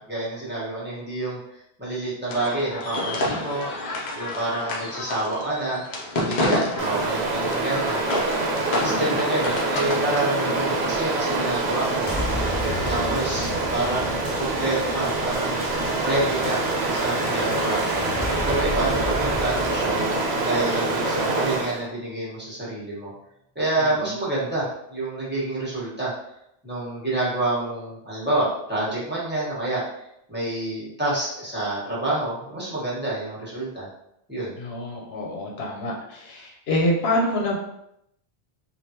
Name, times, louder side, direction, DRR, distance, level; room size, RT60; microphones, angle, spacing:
voice 1, 0.0-1.4 1.8-3.7 4.1-5.8 6.1-8.0 8.7-12.1 12.9-15.6 16.0-18.0 18.4-20.0 20.4-23.1 23.5-26.1 26.6-29.8 30.3-33.9 34.3-34.6, right 2 dB, 10° right, -8 dB, 1.2 m, -28 dB
sound 1, 2.3-10.0, left 2 dB, 50° left, 0.7 m, -29 dB
Stream, 6.8-21.8, right 2 dB, 80° right, 0.9 m, -26 dB
sound 2, 12.1-21.1, left 1 dB, 25° left, 0.3 m, -33 dB
voice 2, 12.7-13.6 23.8-24.1 34.6-37.6, left 1 dB, 75° left, -1 dB, 1.0 m, -27 dB
3.4 x 2.4 x 2.8 m, 0.78 s
omnidirectional pair, 1.1 m